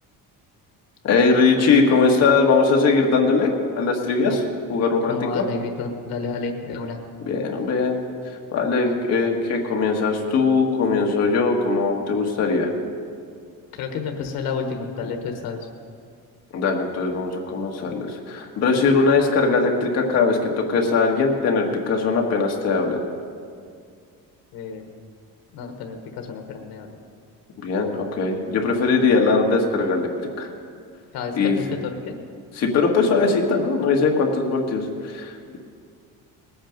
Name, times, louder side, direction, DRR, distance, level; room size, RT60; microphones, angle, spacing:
voice 1, 1.0-4.4 4.7-5.4 7.3-8.0 8.5-12.7 16.5-23.0 27.6-30.1 30.4-30.5 31.3-31.6 32.5-35.6, left 4 dB, 45° left, 1 dB, 1.7 m, -20 dB
voice 2, 5.1-7.0 13.7-15.7 24.5-24.9 25.5-27.0 31.1-32.2, left 5 dB, 85° left, 4 dB, 1.4 m, -30 dB
19.5 x 8.8 x 5.2 m, 2.2 s
cardioid pair, 170°, 35 cm